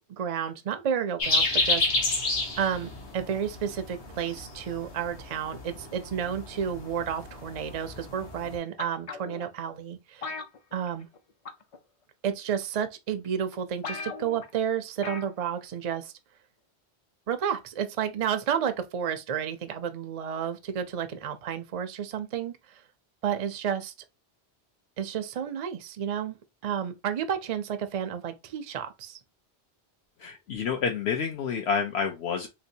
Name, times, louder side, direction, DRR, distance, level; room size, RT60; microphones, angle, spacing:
voice 1, 0.2-2.1 2.6-10.3 10.7-11.1 12.2-16.1 17.3-22.8 23.2-23.9 25.0-26.4 26.6-29.2, right 8 dB, 50° right, 0.4 m, -31 dB
sound 1, 1.2-8.6, left 2 dB, 90° left, 1.4 m, -31 dB
sound 2, 8.8-9.5 10.2-11.2 11.5-11.8 12.6-12.7 13.2-13.3 13.5-13.6 13.8-14.5 15.0-15.4 15.7-15.8, left 4 dB, 50° left, 0.4 m, -38 dB
voice 2, 30.2-32.5, left 6 dB, 75° left, 0.8 m, -29 dB
3.3 x 3.0 x 2.7 m
omnidirectional pair, 1.1 m